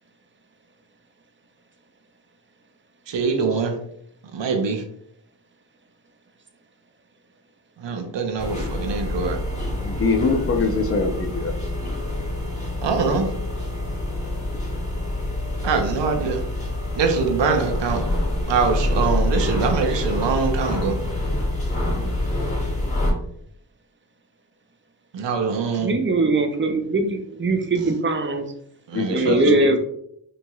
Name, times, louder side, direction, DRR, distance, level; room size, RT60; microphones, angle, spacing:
voice 1, 3.1-3.8 4.3-4.8 7.8-9.4 12.8-13.3 15.6-16.4 17.0-18.0 18.5-21.0 25.1-25.9 28.9-29.8, right 5 dB, 80° right, 5 dB, 0.6 m, -23 dB
sound 1, 8.4-23.1, left 1 dB, 15° left, 1.2 m, -26 dB
voice 2, 9.8-11.5 28.9-29.6, left 3 dB, 35° left, 5 dB, 0.5 m, -23 dB
voice 3, 25.8-28.5 29.1-29.8, right 2 dB, 30° right, 6 dB, 0.5 m, -21 dB
3.0 x 2.7 x 2.3 m, 0.69 s
cardioid pair, 50°, 43 cm